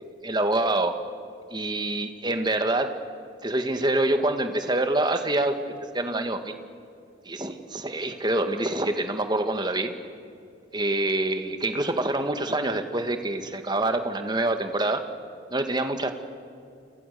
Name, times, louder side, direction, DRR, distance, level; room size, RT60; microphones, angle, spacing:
voice 1, 0.2-0.9 1.5-2.9 3.4-5.6 5.9-6.6 7.3-9.9 10.7-15.0 15.5-16.1, right 2 dB, 25° right, 7 dB, 1.9 m, -26 dB
30.0 x 26.5 x 6.9 m, 2.5 s
head